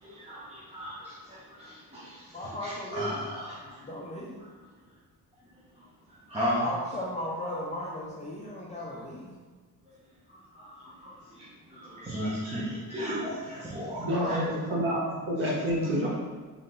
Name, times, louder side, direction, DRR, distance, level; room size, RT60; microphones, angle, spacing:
voice 1, 0.0-3.8 6.3-6.6 10.3-14.4, equal, 15° right, -8 dB, 0.7 m, -36 dB
voice 2, 2.3-3.3 3.6-4.4 6.6-9.3, left 1 dB, 20° left, -5 dB, 0.4 m, -36 dB
voice 3, 14.0-16.1, equal, 30° right, -5 dB, 1.1 m, -28 dB
3.7 x 3.3 x 3.8 m, 1.4 s
wide cardioid pair, 175°, 38 cm